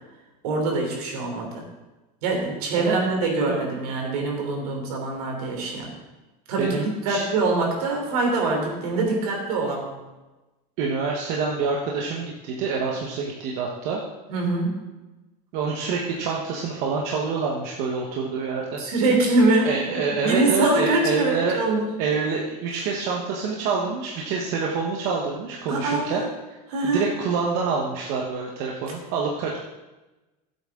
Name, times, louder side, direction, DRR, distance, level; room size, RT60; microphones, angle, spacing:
voice 1, 0.4-1.6 2.2-5.9 6.5-9.9 14.3-14.8 18.8-19.7 20.2-21.9 25.7-26.3 26.7-27.1, right 2 dB, 65° right, 0 dB, 3.3 m, -24 dB
voice 2, 3.3-3.6 6.6-7.2 10.8-14.0 15.5-18.8 19.6-21.6 22.0-26.2 26.5-26.6 26.8-29.6, right 5 dB, 40° right, -1 dB, 1.1 m, -27 dB
15.0 x 8.2 x 3.7 m, 1.1 s
supercardioid pair, 175°, 21 cm